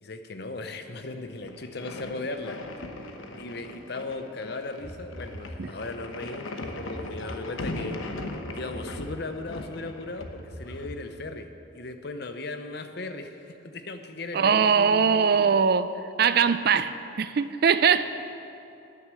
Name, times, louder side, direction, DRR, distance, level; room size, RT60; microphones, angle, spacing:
voice 1, 0.0-2.6 3.4-8.0 8.5-15.4 18.0-18.1, left 2 dB, 55° left, 8 dB, 0.8 m, -37 dB
sound 1, 1.4-10.9, left 2 dB, 85° left, 1.0 m, -39 dB
sound 2, 4.8-6.0 6.6-7.8 8.4-9.5 10.2-11.3, equal, 5° left, 2.9 m, -43 dB
voice 2, 14.3-15.9 16.2-18.1, right 6 dB, 50° right, 13 dB, 0.4 m, -21 dB
9.6 x 9.5 x 7.5 m, 2.8 s
head